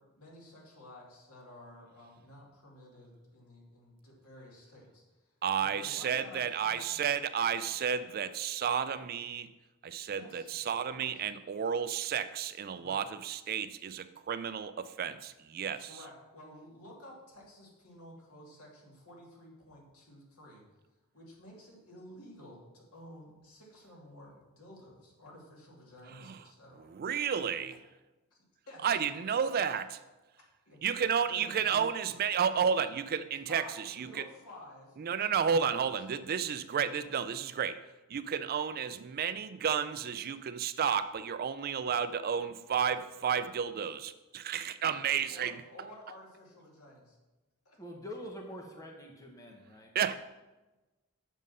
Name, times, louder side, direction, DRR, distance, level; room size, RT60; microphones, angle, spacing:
voice 1, 0.0-5.3 5.6-7.0 10.1-10.6 11.0-11.2 12.7-13.0 15.8-20.6 21.1-26.9 28.3-29.0 30.7-30.8 31.3-31.8 33.5-35.0 36.0-36.1 45.3-47.2 47.6-47.8, left 1 dB, 75° left, -2 dB, 2.4 m, -52 dB
voice 2, 5.4-9.5 9.8-15.9 26.2-26.4 26.9-27.7 28.8-30.0 30.8-34.1 35.0-37.8 38.1-45.5 49.9-50.1, right 7 dB, 45° right, 12 dB, 0.4 m, -32 dB
voice 3, 47.8-50.1, equal, 15° left, 1 dB, 1.1 m, -45 dB
7.3 x 6.3 x 5.5 m, 1.1 s
head